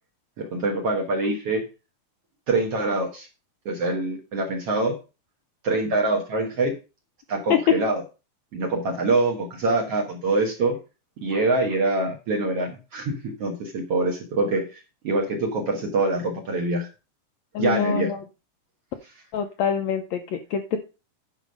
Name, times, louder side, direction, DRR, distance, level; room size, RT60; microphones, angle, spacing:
voice 1, 0.4-1.6 2.5-3.3 3.7-4.9 5.6-6.7 7.3-8.0 8.5-10.8 11.2-16.9 17.6-18.1, right 2 dB, 55° right, 1 dB, 2.1 m, -25 dB
voice 2, 17.5-18.2 19.3-20.8, left 7 dB, 75° left, 6 dB, 1.6 m, -25 dB
10.5 x 5.3 x 5.2 m, 0.31 s
omnidirectional pair, 3.9 m